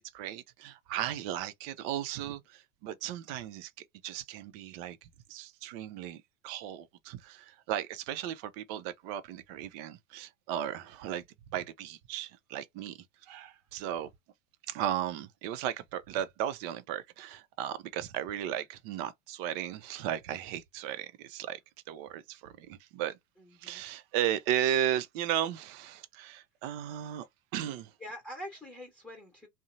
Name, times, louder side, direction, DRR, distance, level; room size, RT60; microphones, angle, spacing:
voice 1, 0.0-3.7 4.0-11.2 11.5-14.1 14.7-21.6 21.9-23.2 23.6-27.3 27.5-27.9, right 11 dB, 45° right, 0.6 m, -35 dB
voice 2, 23.4-23.8 28.0-29.5, equal, 5° left, 1.1 m, -44 dB
2.7 x 2.1 x 2.6 m
hypercardioid pair, 95°, 41 cm